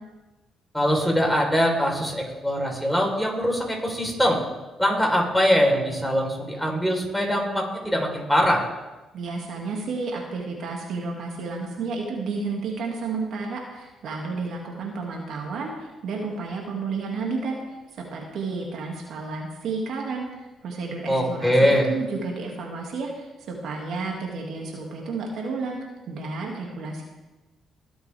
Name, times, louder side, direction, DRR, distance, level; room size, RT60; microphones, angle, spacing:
voice 1, 0.7-4.4 4.8-8.7 21.1-21.9, equal, ahead, 0 dB, 4.1 m, -22 dB
voice 2, 9.1-15.7 16.0-17.6 18.0-20.3 20.6-25.8 26.1-27.0, right 4 dB, 70° right, 0 dB, 2.3 m, -31 dB
21.5 x 7.9 x 3.5 m, 1.1 s
supercardioid pair, 60°, 0 cm